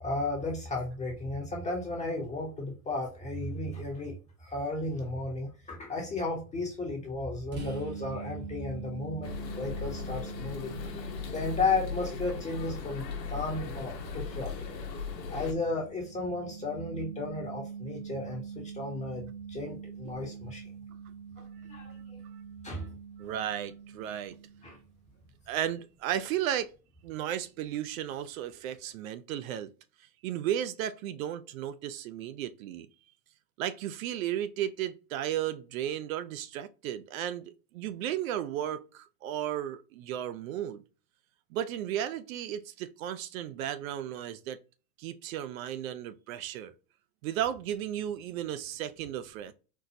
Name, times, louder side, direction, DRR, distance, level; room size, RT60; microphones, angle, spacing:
voice 1, 0.0-4.1 4.4-10.8 11.3-14.5 15.3-20.6 21.4-22.2 22.6-22.9 24.6-24.8, left 2 dB, 15° left, 0.7 m, -34 dB
sound 1, 7.5-25.0, right 6 dB, 20° right, 0.9 m, -44 dB
sound 2, 9.2-15.5, left 6 dB, 85° left, 0.9 m, -38 dB
voice 2, 23.2-24.4 25.5-26.7 27.0-29.7 30.2-32.9 33.6-40.8 41.5-44.6 45.0-46.7 47.2-49.5, right 11 dB, 60° right, 0.6 m, -34 dB
4.3 x 2.0 x 2.6 m
hypercardioid pair, 105°, 49 cm